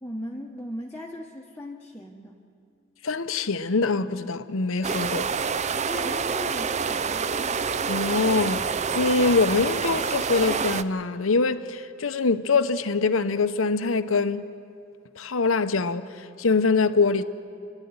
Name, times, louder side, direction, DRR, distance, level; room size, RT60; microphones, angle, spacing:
voice 1, 0.0-2.4 5.8-7.3, equal, 10° left, 1.1 m, -37 dB
voice 2, 3.0-5.3 7.9-8.7 8.9-14.4 15.2-17.2, left 4 dB, 85° left, 0.8 m, -24 dB
sound 1, 4.8-10.8, right 5 dB, 35° right, 0.5 m, -27 dB
29.0 x 12.0 x 9.6 m
head